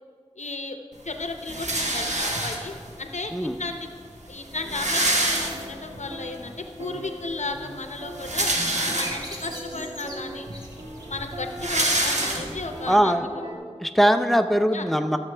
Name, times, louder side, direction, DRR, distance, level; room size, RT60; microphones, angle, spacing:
voice 1, 0.4-0.8 1.0-3.9 4.3-8.5 8.9-10.5 11.0-13.3 14.7-14.9, left 3 dB, 85° left, 5 dB, 0.7 m, -34 dB
sound 1, 1.5-2.9 3.8-3.9 4.1-4.2 4.4-6.0 6.4-6.5 7.9-9.5 10.1-10.2 10.5-12.8, right 1 dB, 85° right, 1.2 m, -26 dB
sound 2, 4.3-13.6, equal, 50° right, 1.5 m, -41 dB
sound 3, 8.7-11.2, equal, 35° right, 1.8 m, -40 dB
voice 2, 12.9-13.2 13.8-15.2, equal, ahead, 7 dB, 0.5 m, -21 dB
14.5 x 7.2 x 3.3 m, 2.1 s
wide cardioid pair, 45°, 12 cm